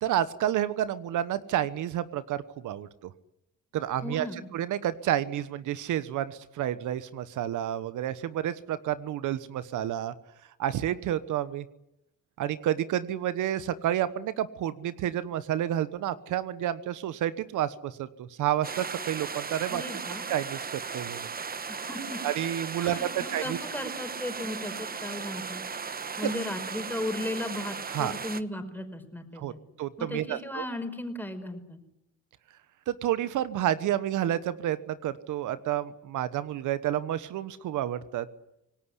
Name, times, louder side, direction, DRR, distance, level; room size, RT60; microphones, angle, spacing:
voice 1, 0.0-3.1 3.7-4.3 4.5-10.1 10.6-11.6 12.4-19.8 20.3-21.3 22.2-23.0 23.3-23.6 27.9-28.1 29.4-29.5 29.8-30.6 32.9-38.3, right 11 dB, 80° right, 14 dB, 1.2 m, -30 dB
voice 2, 4.0-4.5 19.7-20.3 21.7-22.2 22.8-25.6 26.2-29.6 30.0-31.8, left 1 dB, 5° left, 7 dB, 5.2 m, -36 dB
sound 1, 18.6-28.4, right 5 dB, 30° right, 1.2 m, -37 dB
26.0 x 18.5 x 10.0 m, 0.85 s
cardioid pair, 90°, 30 cm